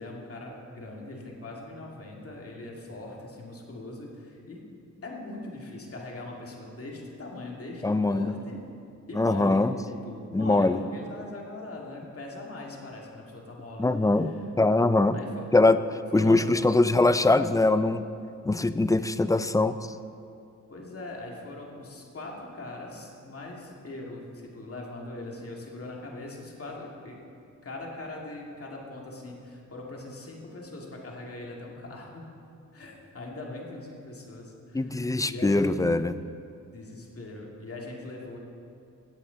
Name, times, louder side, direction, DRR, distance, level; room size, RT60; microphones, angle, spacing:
voice 1, 0.0-4.6 5.0-8.6 9.1-14.5 15.1-15.5 16.1-16.4 20.7-27.2 27.6-32.3 32.7-35.7 36.7-38.4, left 2 dB, 45° left, -1 dB, 2.3 m, -41 dB
voice 2, 7.8-8.3 9.1-9.7 10.3-10.8 13.8-15.2 15.5-15.8 16.1-18.0 18.4-19.7 34.7-36.2, left 2 dB, 10° left, 12 dB, 0.4 m, -22 dB
16.0 x 8.5 x 4.0 m, 2.5 s
cardioid pair, 70°, 31 cm